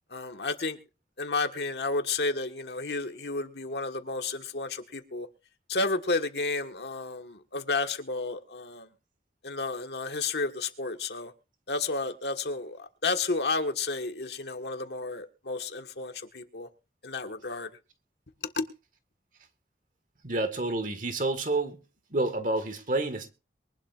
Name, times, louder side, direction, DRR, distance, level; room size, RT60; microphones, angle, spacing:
voice 1, 0.1-0.8 1.2-5.3 5.7-8.9 9.4-11.3 11.7-16.7 17.0-17.7 18.6-18.7, left 3 dB, 75° left, 1.5 m, -31 dB
voice 2, 20.2-21.8 22.1-23.3, right 2 dB, 50° right, 1.7 m, -29 dB
23.0 x 11.5 x 2.5 m
head